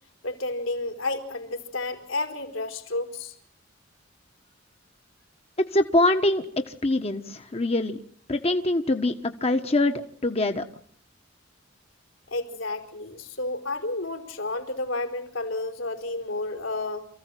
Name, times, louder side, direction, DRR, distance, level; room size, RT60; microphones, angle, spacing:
voice 1, 0.2-3.3 12.3-17.1, left 2 dB, 80° left, 7 dB, 4.6 m, -31 dB
voice 2, 5.6-8.0 8.3-9.9 10.2-10.6, left 2 dB, 30° left, 6 dB, 1.3 m, -24 dB
28.5 x 15.5 x 9.1 m, 0.63 s
head